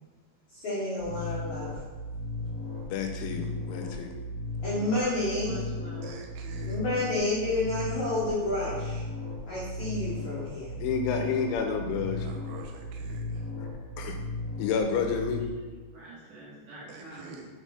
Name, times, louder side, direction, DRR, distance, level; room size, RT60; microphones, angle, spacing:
voice 1, 0.5-1.7 4.6-5.6 6.6-9.0 9.5-10.7, left 2 dB, 60° left, -9 dB, 2.0 m, -30 dB
sound 1, 1.0-15.4, left 1 dB, 25° left, 1.7 m, -36 dB
voice 2, 2.9-4.1 10.8-12.3 13.6-13.7 14.0-14.2 14.6-15.4, left 6 dB, 85° left, 4 dB, 3.0 m, -30 dB
voice 3, 5.4-6.5 15.4-15.5 15.9-17.4, right 2 dB, 55° right, -7 dB, 2.8 m, -46 dB
voice 4, 6.0-6.8 12.1-13.4 16.9-17.5, right 5 dB, 90° right, 2 dB, 3.3 m, -47 dB
6.6 x 5.5 x 4.9 m, 1.3 s
omnidirectional pair, 5.5 m